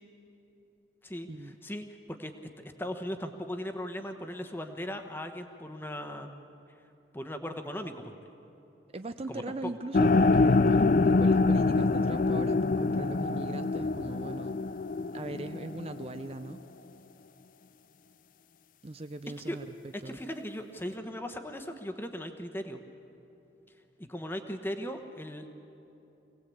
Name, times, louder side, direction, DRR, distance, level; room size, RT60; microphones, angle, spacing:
voice 1, 1.0-2.3 2.6-6.3 7.1-8.1 9.3-9.7 19.5-19.6 20.0-22.8 24.0-25.5, equal, 10° left, 6 dB, 1.1 m, -38 dB
voice 2, 8.9-10.9 11.2-14.5 15.1-16.6 18.8-20.2, right 2 dB, 35° right, 9 dB, 0.5 m, -40 dB
sound 1, 9.9-16.1, left 3 dB, 45° left, 0.4 m, -25 dB
24.0 x 18.0 x 8.5 m, 3.0 s
head